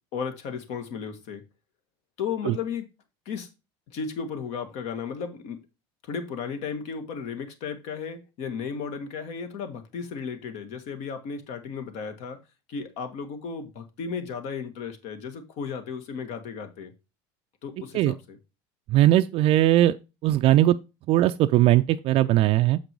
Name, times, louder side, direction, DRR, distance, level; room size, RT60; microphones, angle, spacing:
voice 1, 0.1-1.4 2.2-2.9 3.2-3.5 3.9-5.6 6.0-12.4 12.7-16.9 17.6-18.4, left 6 dB, 60° left, 1.8 m, -34 dB
voice 2, 18.9-20.0 20.2-20.8 21.1-22.8, right 14 dB, 50° right, 0.4 m, -19 dB
7.2 x 5.2 x 4.6 m
supercardioid pair, 120°, 12 cm